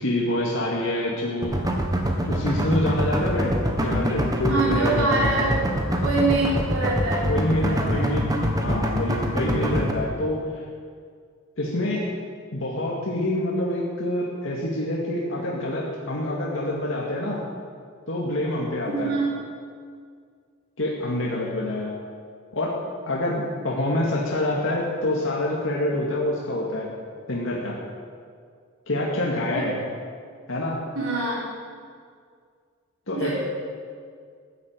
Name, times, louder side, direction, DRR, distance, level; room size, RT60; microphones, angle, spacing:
voice 1, 0.0-1.6 2.3-5.0 7.2-10.6 11.6-12.1 12.5-17.4 18.1-19.1 20.8-21.9 22.5-22.7 23.1-26.9 27.3-27.8 28.9-29.7 30.5-30.8 33.1-33.3, left 1 dB, 60° left, -4 dB, 2.3 m, -26 dB
sound 1, 1.4-9.9, equal, 15° right, 1.5 m, -24 dB
voice 2, 4.4-5.6 6.0-7.4 7.7-8.1 18.9-19.3 29.5-29.7 30.9-31.4 33.1-33.3, right 2 dB, 70° right, -5 dB, 4.5 m, -25 dB
14.0 x 10.5 x 9.1 m, 2.1 s
head